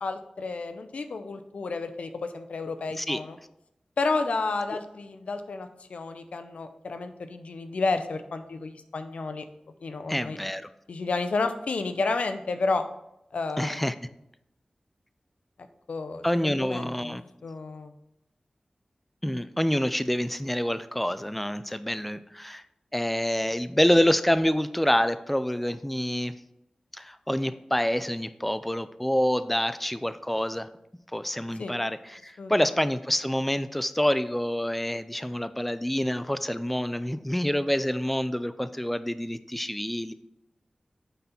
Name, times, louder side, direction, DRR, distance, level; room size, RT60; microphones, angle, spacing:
voice 1, 0.0-3.4 4.0-9.4 9.8-10.4 10.9-12.8 13.3-13.8 15.9-17.9 31.6-31.7 32.4-32.5, left 3 dB, 90° left, 8 dB, 0.6 m, -31 dB
voice 2, 10.1-10.7 13.6-14.0 16.2-17.2 19.2-22.6 22.9-26.3 26.9-30.7 31.1-40.1, equal, 5° left, 13 dB, 0.4 m, -27 dB
9.1 x 4.0 x 4.3 m, 0.85 s
wide cardioid pair, 65°, 2 cm